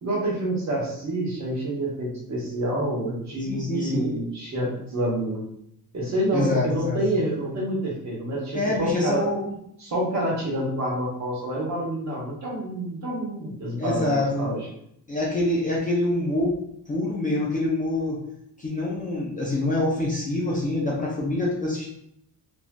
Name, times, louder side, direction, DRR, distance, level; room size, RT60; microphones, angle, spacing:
voice 1, 0.0-5.4 5.9-9.2 9.8-14.7, right 1 dB, 45° right, -3 dB, 0.9 m, -28 dB
voice 2, 3.4-4.1 6.3-7.0 8.5-9.5 13.8-14.5 15.1-16.6 16.9-18.2 18.6-21.9, left 2 dB, 20° left, -5 dB, 0.4 m, -25 dB
3.0 x 2.5 x 2.2 m, 0.73 s
wide cardioid pair, 170°, 38 cm